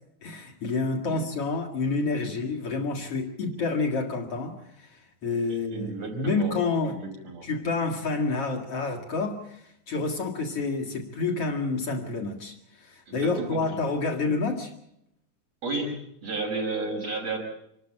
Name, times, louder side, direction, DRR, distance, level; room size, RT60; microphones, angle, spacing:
voice 1, 0.2-6.9 7.4-14.7, left 3 dB, 50° left, 1 dB, 2.7 m, -29 dB
voice 2, 5.5-6.6 6.8-7.5 13.1-13.6 15.6-17.5, right 3 dB, 55° right, 0 dB, 6.1 m, -33 dB
26.0 x 12.5 x 8.6 m, 0.77 s
omnidirectional pair, 3.4 m